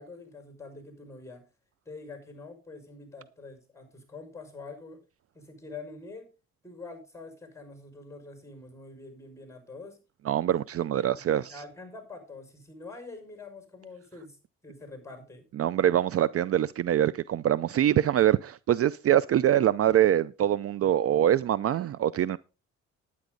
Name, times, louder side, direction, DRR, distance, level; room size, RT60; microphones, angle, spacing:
voice 1, 0.0-1.4 1.9-5.0 5.3-6.3 6.6-10.0 10.5-10.6 10.9-14.4 14.6-15.4, left 3 dB, 10° left, 5.8 m, -45 dB
voice 2, 10.3-11.5 15.6-22.4, right 11 dB, 50° right, 0.5 m, -24 dB
11.5 x 10.0 x 4.0 m
cardioid pair, 90°, 30 cm